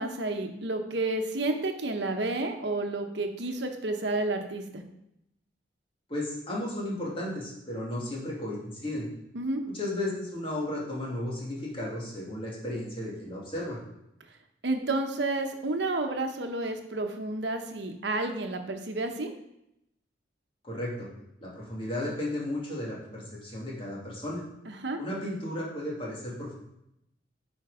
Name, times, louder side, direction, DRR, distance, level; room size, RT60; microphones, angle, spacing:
voice 1, 0.0-4.8 9.3-9.6 14.6-19.3 24.7-25.0, right 2 dB, 65° right, 5 dB, 1.1 m, -30 dB
voice 2, 6.1-9.1 9.7-13.8 20.6-21.1 21.4-24.4 25.0-26.5, left 1 dB, 30° left, -4 dB, 2.4 m, -34 dB
9.3 x 4.6 x 5.0 m, 0.82 s
head